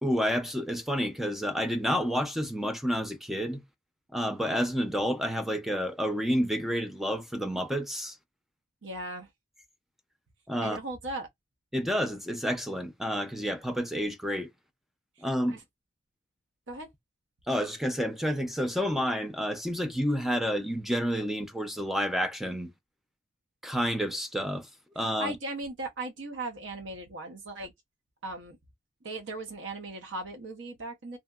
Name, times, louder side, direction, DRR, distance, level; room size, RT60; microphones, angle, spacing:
voice 1, 0.0-3.6 4.1-8.2 10.5-10.8 11.7-14.5 15.2-15.6 17.5-22.7 23.6-24.7 25.0-25.3, equal, ahead, 0.3 m, -29 dB
voice 2, 8.8-9.3 10.6-11.3 15.2-15.6 16.7-16.9 25.2-27.7 28.2-28.6 29.0-31.2, right 2 dB, 70° right, 0.7 m, -38 dB
2.7 x 2.6 x 2.3 m
head